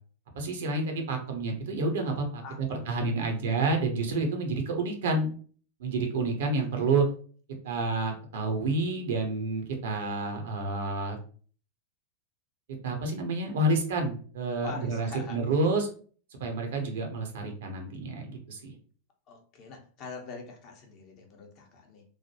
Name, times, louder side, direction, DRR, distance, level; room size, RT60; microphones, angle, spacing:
voice 1, 0.4-5.3 5.8-7.1 7.6-11.2 12.8-15.9 16.4-18.7, right 3 dB, 60° right, 3 dB, 0.7 m, -29 dB
voice 2, 2.4-3.7 6.7-7.1 7.6-7.8 14.6-15.4 19.3-22.0, left 4 dB, 40° left, 1 dB, 0.8 m, -45 dB
3.1 x 2.1 x 2.8 m, 0.43 s
figure-of-eight pair, 90°, 0 cm